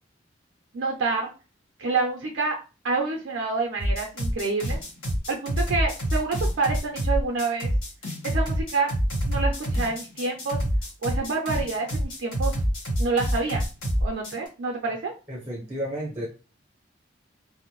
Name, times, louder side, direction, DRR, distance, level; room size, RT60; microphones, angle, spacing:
voice 1, 0.7-1.3 1.8-2.6 2.8-4.8 5.3-7.7 8.2-8.9 9.3-10.6 11.0-12.5 13.0-13.6 14.0-15.1, right 3 dB, 85° right, 1 dB, 0.5 m, -27 dB
sound 1, 3.8-14.5, equal, 80° left, 1.1 m, -26 dB
voice 2, 15.3-16.3, equal, 15° right, -5 dB, 0.7 m, -32 dB
2.5 x 2.0 x 3.0 m, 0.32 s
head